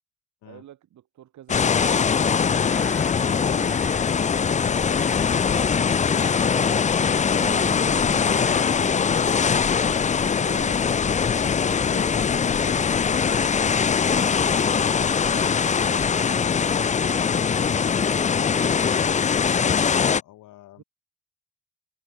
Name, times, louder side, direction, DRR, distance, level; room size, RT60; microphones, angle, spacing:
voice 1, 0.4-2.1 3.2-9.0 10.3-17.5 20.8-20.9, right 12 dB, 70° right, 2.4 m, -47 dB
sound 1, 1.5-20.2, left 6 dB, 25° left, 0.5 m, -22 dB
Crow, 2.2-9.0, equal, 5° left, 7.8 m, -48 dB
sound 2, 7.4-11.1, right 5 dB, 25° right, 0.9 m, -42 dB
voice 2, 19.6-20.8, left 15 dB, 90° left, 4.3 m, -48 dB
cardioid pair, 90°, 30 cm